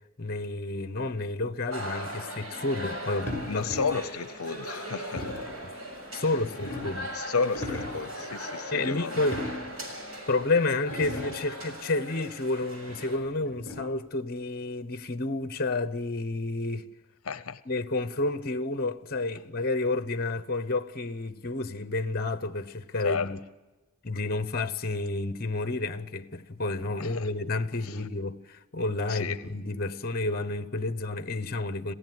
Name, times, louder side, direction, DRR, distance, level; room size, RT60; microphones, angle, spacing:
voice 1, 0.2-3.7 6.1-7.1 8.7-9.4 10.3-16.9 17.7-23.4 24.0-31.9, left 2 dB, 45° left, 1.0 m, -30 dB
sound 1, 1.7-13.2, equal, 70° right, 6.8 m, -39 dB
sound 2, 3.3-4.1 5.2-5.6 6.2-7.1 7.4-8.1 9.1-9.9 10.4-10.5 10.8-11.5 12.9-14.1, left 1 dB, 10° left, 7.6 m, -37 dB
voice 2, 3.5-5.3 7.1-9.3 17.2-17.6 23.0-23.3 27.0-27.3 27.8-28.1 29.1-29.5, left 5 dB, 75° left, 0.7 m, -32 dB
27.5 x 16.5 x 7.8 m
head